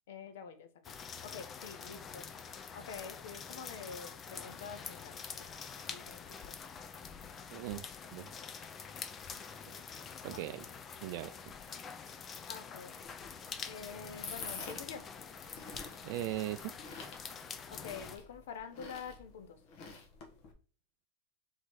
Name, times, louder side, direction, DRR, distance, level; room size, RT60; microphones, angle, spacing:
voice 1, 0.1-2.3 2.7-5.5 5.9-6.2 12.5-12.9 13.6-15.1 17.7-19.6, left 6 dB, 80° left, 9 dB, 0.7 m, -47 dB
sound 1, 0.8-18.2, left 6 dB, 30° left, 0.5 m, -46 dB
voice 2, 7.5-7.8 8.1-8.3 9.7-9.8 10.2-10.7 11.0-11.3 16.0-16.7, right 14 dB, 60° right, 10 dB, 0.3 m, -38 dB
sound 2, 13.0-20.5, left 4 dB, 55° left, 1.2 m, -49 dB
3.8 x 3.1 x 4.0 m, 0.40 s
supercardioid pair, 115°, 0 cm